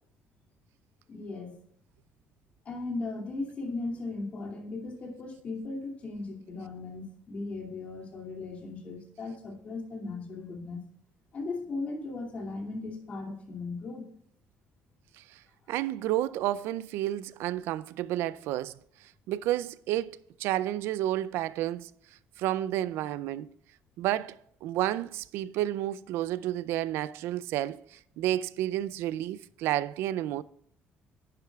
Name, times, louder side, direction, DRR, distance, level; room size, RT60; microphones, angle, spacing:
voice 1, 1.1-1.6 2.6-10.8 11.3-14.1, left 3 dB, 35° left, 2.6 m, -37 dB
voice 2, 15.7-18.8 19.3-21.9 22.4-23.5 24.0-30.4, right 13 dB, 80° right, 0.4 m, -31 dB
10.5 x 10.5 x 2.4 m
cardioid pair, 170°, 4 cm